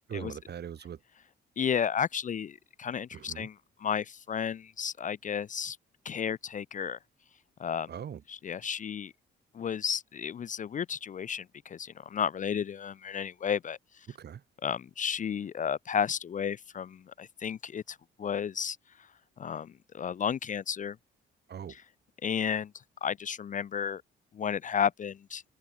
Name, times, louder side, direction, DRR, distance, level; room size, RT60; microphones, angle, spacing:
voice 1, 0.1-1.0 3.1-3.5 7.9-8.2 14.1-14.4 21.5-21.8, right 8 dB, 55° right, 5.1 m, -41 dB
voice 2, 1.6-3.6 3.8-5.8 6.1-7.0 7.6-7.9 8.3-9.1 9.5-13.8 14.6-18.8 19.4-21.0 22.2-22.7 23.0-24.0 24.3-25.4, left 7 dB, 40° left, 0.5 m, -32 dB
cardioid pair, 90°, 20 cm